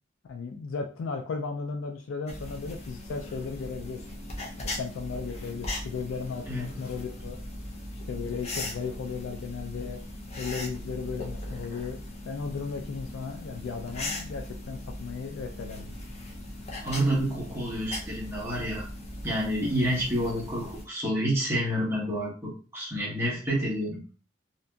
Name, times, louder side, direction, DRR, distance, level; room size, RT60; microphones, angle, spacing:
voice 1, 0.3-4.1 4.6-7.4 8.1-10.0 10.4-12.0 12.3-15.9 19.5-19.7, left 5 dB, 90° left, 3 dB, 0.4 m, -35 dB
sound 1, 2.3-20.8, left 1 dB, 35° left, 0.5 m, -39 dB
voice 2, 16.8-18.9 19.2-24.0, equal, 15° right, -5 dB, 1.0 m, -29 dB
2.7 x 2.5 x 2.3 m, 0.37 s
head